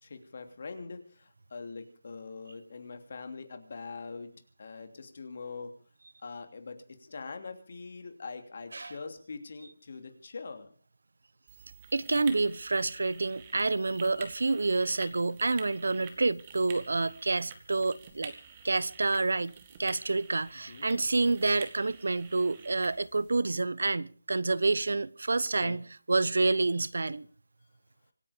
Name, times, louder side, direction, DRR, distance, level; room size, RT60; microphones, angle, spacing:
voice 1, 0.0-4.3 4.6-5.7 6.2-10.7 20.7-20.9 25.6-25.8, left 4 dB, 45° left, 2.9 m, -43 dB
sound 1, 11.5-23.3, right 6 dB, 20° right, 1.9 m, -50 dB
voice 2, 11.9-18.3 18.6-27.3, right 3 dB, 75° right, 0.8 m, -28 dB
25.5 x 9.4 x 5.1 m
figure-of-eight pair, 175°, 0 cm